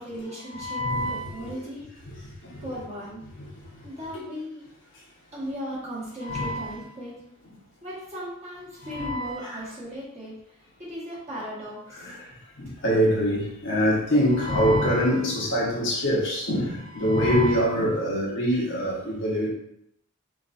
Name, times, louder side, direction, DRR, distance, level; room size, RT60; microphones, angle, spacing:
voice 1, 0.0-0.9 1.3-1.8 2.6-3.2 3.8-4.6 5.3-7.2 7.8-10.3 10.8-12.1, equal, 30° right, -8 dB, 1.6 m, -37 dB
voice 2, 0.5-1.2 6.2-6.7 8.9-9.5 12.8-19.5, equal, 55° left, -5 dB, 1.2 m, -24 dB
4.8 x 3.3 x 2.6 m, 0.76 s
head